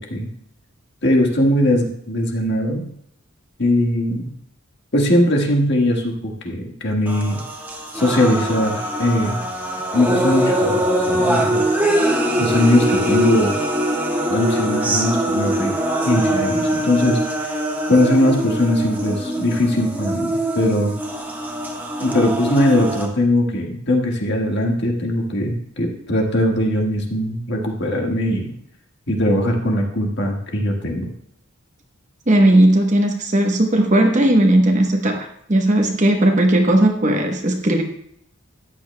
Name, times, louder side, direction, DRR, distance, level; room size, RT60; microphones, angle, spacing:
voice 1, 1.0-2.9 3.6-4.3 4.9-7.4 7.9-9.4 9.9-11.6 12.4-13.5 14.3-15.7 16.0-17.6 17.9-20.9 22.0-28.5 29.1-31.1, left 1 dB, 55° left, 1 dB, 1.6 m, -20 dB
sound 1, 7.1-23.1, right 1 dB, 10° right, 1.2 m, -22 dB
voice 2, 32.3-37.8, right 1 dB, 35° right, 2 dB, 1.0 m, -16 dB
13.5 x 9.3 x 2.2 m, 0.70 s
head